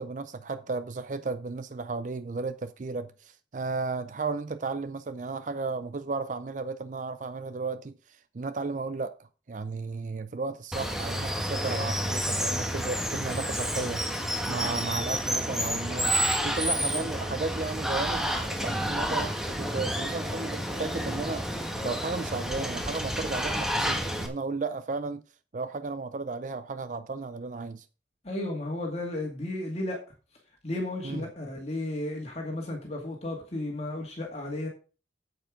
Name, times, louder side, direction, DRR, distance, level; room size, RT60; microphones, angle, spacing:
voice 1, 0.0-14.0 14.5-25.2 25.5-27.9 31.0-31.2, right 3 dB, 45° right, 0.4 m, -34 dB
Water, 10.7-24.3, equal, 5° right, 1.4 m, -30 dB
voice 2, 28.2-30.0 30.6-34.7, left 1 dB, 35° left, 2.2 m, -33 dB
8.9 x 7.9 x 5.0 m
head